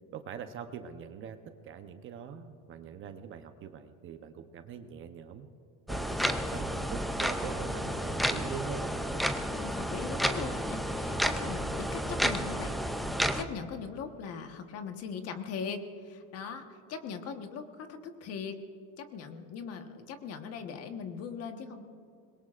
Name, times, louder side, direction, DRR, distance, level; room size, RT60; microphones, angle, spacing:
voice 1, 0.1-1.4 1.6-5.5 5.9-8.9, right 7 dB, 35° right, 8 dB, 0.8 m, -43 dB
sound 1, 5.9-13.4, equal, ahead, 0.3 m, -31 dB
voice 2, 9.5-12.8 13.4-18.6 19.0-21.8, left 6 dB, 40° left, 6 dB, 1.3 m, -40 dB
25.5 x 21.5 x 2.5 m, 2.5 s
cardioid pair, 150°, 37 cm